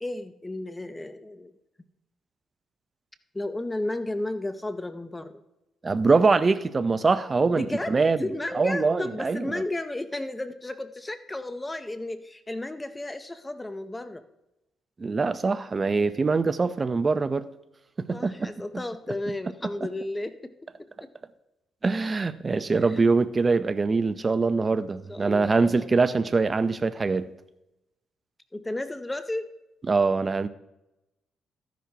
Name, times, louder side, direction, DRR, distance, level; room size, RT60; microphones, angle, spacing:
voice 1, 0.0-1.5 3.3-5.4 7.6-14.2 18.1-20.5 20.8-21.1 22.7-23.1 25.1-25.9 28.5-29.5, left 2 dB, 15° left, 11 dB, 0.6 m, -33 dB
voice 2, 5.8-8.2 8.5-9.5 15.0-17.5 18.0-18.8 19.6-19.7 21.8-27.3 29.9-30.5, right 4 dB, 30° right, 13 dB, 0.6 m, -23 dB
13.5 x 10.5 x 2.8 m, 0.94 s
cardioid pair, 90°, 0 cm